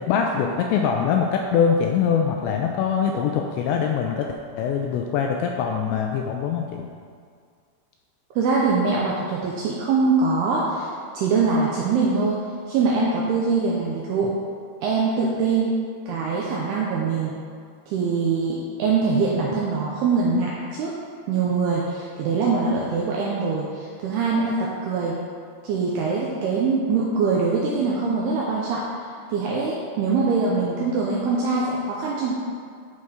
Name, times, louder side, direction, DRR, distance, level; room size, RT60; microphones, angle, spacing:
voice 1, 0.0-6.8, left 7 dB, 85° left, 2 dB, 2.5 m, -23 dB
voice 2, 8.4-12.4 12.7-14.3 14.8-15.7 16.1-17.4 17.9-20.9 21.3-25.2 25.6-28.8 29.3-32.3, right 4 dB, 85° right, -4 dB, 2.3 m, -23 dB
12.0 x 4.3 x 4.9 m, 2.1 s
omnidirectional pair, 5.5 m